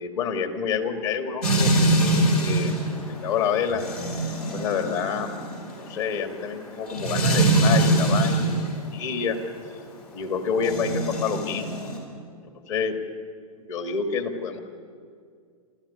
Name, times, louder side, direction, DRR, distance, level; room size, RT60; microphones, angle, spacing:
voice 1, 0.0-1.7 2.1-2.8 3.2-3.8 4.5-5.3 5.7-8.5 8.9-9.4 10.1-11.7 12.7-13.0 13.7-14.6, left 6 dB, 55° left, 6 dB, 2.4 m, -28 dB
sound 1, 1.4-8.7 10.6-12.0, right 2 dB, 90° left, 5.7 m, -23 dB
27.5 x 14.5 x 8.6 m, 2.2 s
hypercardioid pair, 130°, 19 cm